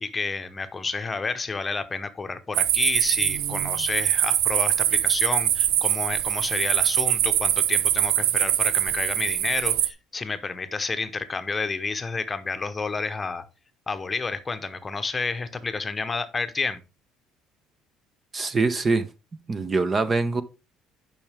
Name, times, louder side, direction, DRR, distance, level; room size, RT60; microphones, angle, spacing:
voice 1, 0.0-13.4 13.9-16.8, left 4 dB, 20° left, 0.9 m, -30 dB
sound 1, 2.5-9.9, right 12 dB, 85° right, 0.7 m, -23 dB
voice 2, 18.3-19.1 19.5-20.4, right 3 dB, 25° right, 0.7 m, -23 dB
10.5 x 5.8 x 3.5 m
cardioid pair, 125°, 0 cm